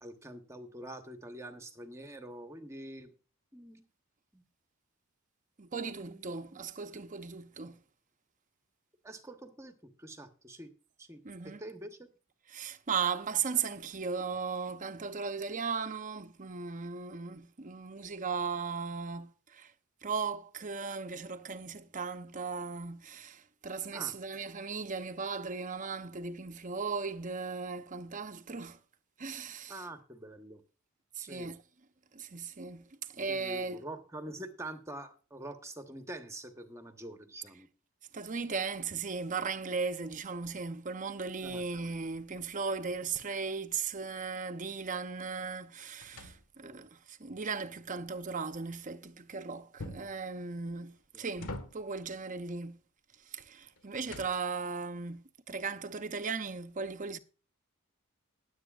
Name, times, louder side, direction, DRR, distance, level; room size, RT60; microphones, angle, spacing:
voice 1, 0.0-3.1 3.5-3.8 4.3-4.4 5.8-6.6 9.0-10.7 11.0-12.1 23.9-24.2 29.7-30.6 31.2-31.5 33.3-37.7 41.4-41.6 46.6-46.9 51.1-51.2, right 1 dB, 15° right, 1.1 m, -46 dB
voice 2, 5.6-7.8 11.2-11.6 12.5-19.7 20.0-28.8 29.2-29.8 31.2-31.6 32.1-33.8 38.1-52.8 53.3-57.2, right 5 dB, 35° right, 0.7 m, -37 dB
sound 1, 41.4-44.3 44.7-47.0 49.8-50.3 50.9-52.1 53.4-54.7, left 1 dB, 85° left, 1.5 m, -48 dB
20.0 x 8.1 x 2.4 m
head